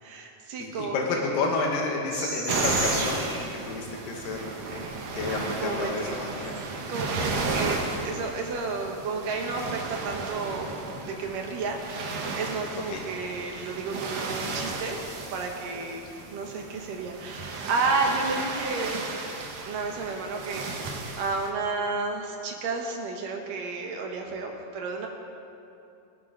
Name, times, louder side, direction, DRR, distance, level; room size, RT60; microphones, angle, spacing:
voice 1, 0.0-1.4 5.6-6.1 6.9-15.0 15.3-19.2 19.7-25.1, right 3 dB, 80° right, 2 dB, 3.0 m, -32 dB
voice 2, 0.6-4.9 5.1-6.5 7.2-7.4 12.9-13.0, left 3 dB, 90° left, 0 dB, 3.0 m, -30 dB
sound 1, 2.1-3.5 4.9-5.0 5.9-6.1 6.4-6.6 8.2-8.3 8.8-8.9 10.3-10.5 13.0-13.1, right 2 dB, 40° right, 3.1 m, -32 dB
sound 2, 2.5-21.5, right 3 dB, 60° right, 1.8 m, -34 dB
21.0 x 10.5 x 3.9 m, 2.7 s
omnidirectional pair, 3.8 m